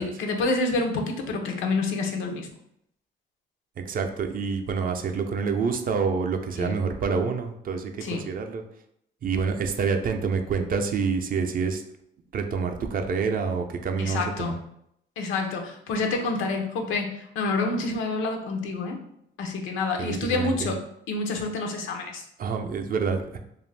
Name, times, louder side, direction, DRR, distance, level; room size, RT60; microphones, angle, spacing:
voice 1, 0.0-2.5 6.6-6.8 8.0-8.2 14.0-14.6 15.2-19.0 19.4-20.8 21.1-22.2, left 3 dB, 85° left, 3 dB, 0.6 m, -28 dB
voice 2, 3.8-8.6 9.2-11.8 12.3-14.5 20.0-20.7 22.4-23.4, right 5 dB, 45° right, 6 dB, 0.4 m, -27 dB
2.5 x 2.4 x 3.2 m, 0.74 s
cardioid pair, 90°, 20 cm